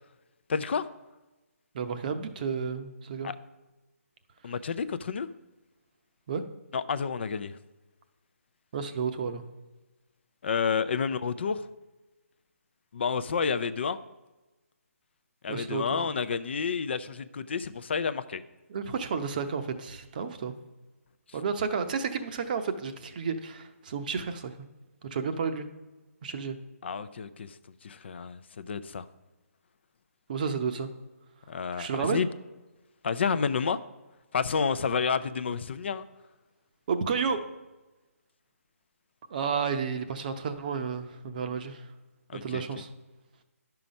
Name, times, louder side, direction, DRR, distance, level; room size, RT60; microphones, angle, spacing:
voice 1, 0.5-0.9 3.2-3.4 4.4-5.3 6.7-7.5 10.4-11.7 12.9-14.0 15.4-18.4 26.8-27.6 27.8-29.0 31.5-32.3 33.0-33.8 34.3-36.0 42.3-42.6, left 6 dB, 45° left, 13 dB, 0.5 m, -30 dB
voice 2, 1.7-3.3 6.3-6.4 8.7-9.4 15.5-16.1 18.7-20.5 21.3-24.5 25.0-25.7 26.2-26.6 30.3-30.9 31.7-32.2 36.9-37.4 39.3-41.9 42.3-42.9, right 5 dB, 35° right, 9 dB, 0.7 m, -31 dB
11.0 x 5.7 x 5.2 m, 1.1 s
hypercardioid pair, 165°, 8 cm